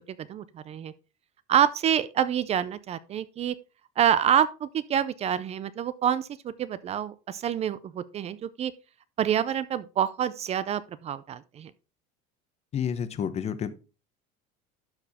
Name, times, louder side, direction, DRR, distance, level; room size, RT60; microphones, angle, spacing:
voice 1, 0.2-0.9 1.5-3.6 4.0-8.7 9.2-11.7, right 9 dB, 30° right, 0.4 m, -27 dB
voice 2, 12.7-13.7, left 8 dB, 30° left, 0.9 m, -29 dB
12.0 x 4.7 x 3.5 m
cardioid pair, 140°, 21 cm